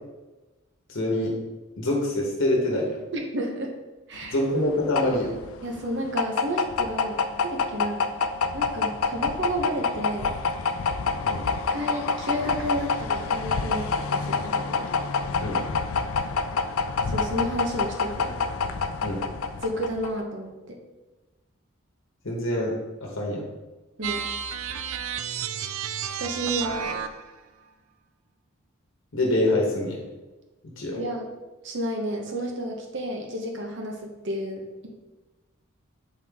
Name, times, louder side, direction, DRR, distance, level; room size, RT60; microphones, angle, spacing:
voice 1, 0.9-1.3 1.8-3.0 4.3-5.3 11.2-11.4 15.4-15.6 19.0-19.2 22.2-22.7 23.0-23.4 29.1-30.0 30.8-31.0, left 1 dB, 65° left, -2 dB, 1.2 m, -25 dB
voice 2, 3.1-3.7 4.1-4.4 5.6-8.0 8.5-10.3 11.7-14.9 17.0-18.4 19.6-20.8 24.0-24.2 26.1-27.0 31.0-31.3 31.6-34.9, equal, 55° right, 1 dB, 0.9 m, -31 dB
sound 1, 4.2-20.2, left 4 dB, 80° left, 0.5 m, -27 dB
sound 2, 24.0-27.3, right 8 dB, 75° right, 0.4 m, -31 dB
7.6 x 4.5 x 3.6 m, 1.2 s
head